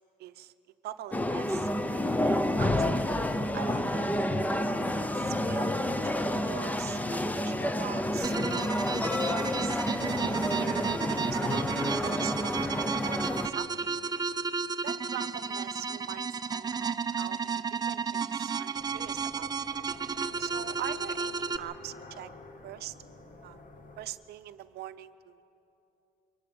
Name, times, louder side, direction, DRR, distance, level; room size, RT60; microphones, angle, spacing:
voice 1, 0.2-0.5 0.8-1.7 2.2-3.1 3.5-4.0 5.0-7.0 7.3-9.8 10.2-11.7 12.0-13.9 14.8-19.5 20.4-22.3 22.6-22.9 23.4-23.6 24.0-25.4, right 13 dB, 70° right, 12 dB, 0.7 m, -43 dB
sound 1, 1.1-13.5, left 1 dB, 10° left, 0.8 m, -29 dB
sound 2, 8.2-21.6, right 5 dB, 25° right, 0.6 m, -33 dB
sound 3, 18.7-24.1, left 1 dB, 50° left, 2.1 m, -49 dB
24.0 x 14.5 x 8.7 m, 2.9 s
cardioid pair, 110°, 17 cm